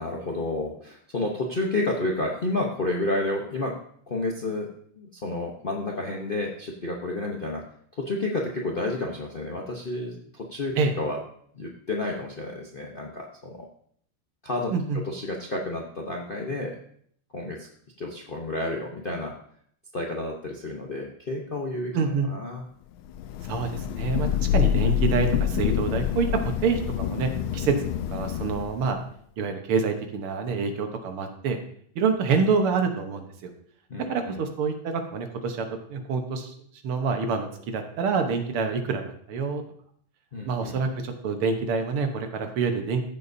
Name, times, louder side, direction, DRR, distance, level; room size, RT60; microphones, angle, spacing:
voice 1, 0.0-3.8 4.1-4.7 5.0-7.6 8.0-10.7 11.0-11.2 11.5-13.7 14.4-16.8 17.3-17.7 18.0-19.3 19.9-22.0 22.3-22.6 33.9-34.0 40.3-40.7, left 2 dB, 50° left, -1 dB, 0.6 m, -30 dB
voice 2, 21.9-22.3 23.5-27.8 28.1-29.0 29.4-31.6 32.0-33.5 34.1-36.5 36.8-39.6 40.5-43.0, right 5 dB, 85° right, 5 dB, 2.0 m, -27 dB
Thunder / Rain, 23.1-28.9, left 11 dB, 75° left, 1.3 m, -26 dB
15.0 x 6.9 x 2.7 m, 0.63 s
omnidirectional pair, 2.3 m